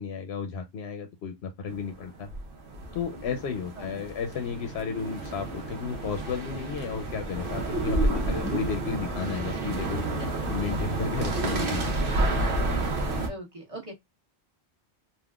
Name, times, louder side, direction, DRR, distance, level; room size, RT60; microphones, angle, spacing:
voice 1, 0.0-2.3 2.9-10.0 10.5-11.9, left 6 dB, 70° left, 0.8 m, -33 dB
sound 1, 1.7-13.3, right 2 dB, 55° right, 1.0 m, -30 dB
sound 2, 4.3-13.2, right 1 dB, 20° left, 0.8 m, -43 dB
voice 2, 13.3-14.0, right 1 dB, 30° right, 1.2 m, -41 dB
3.5 x 2.5 x 2.3 m
omnidirectional pair, 1.1 m